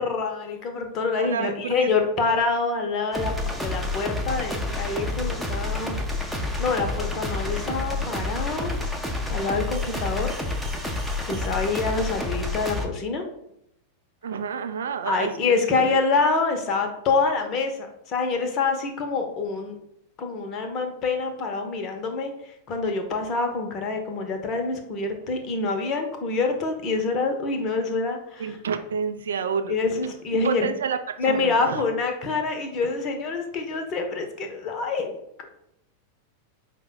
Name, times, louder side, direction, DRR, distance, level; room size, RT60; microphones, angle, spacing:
voice 1, 0.0-8.8 9.3-10.3 11.3-13.3 15.1-19.8 20.2-22.3 22.7-28.4 29.7-30.7 31.2-35.2, left 4 dB, 35° left, 4 dB, 0.7 m, -26 dB
voice 2, 1.2-2.1 7.5-7.7 14.2-16.0 28.4-29.7 30.0-31.8, right 6 dB, 65° right, 8 dB, 0.4 m, -30 dB
sound 1, 3.1-12.9, left 2 dB, ahead, 0.6 m, -29 dB
4.9 x 2.2 x 3.8 m, 0.76 s
figure-of-eight pair, 90°, 0 cm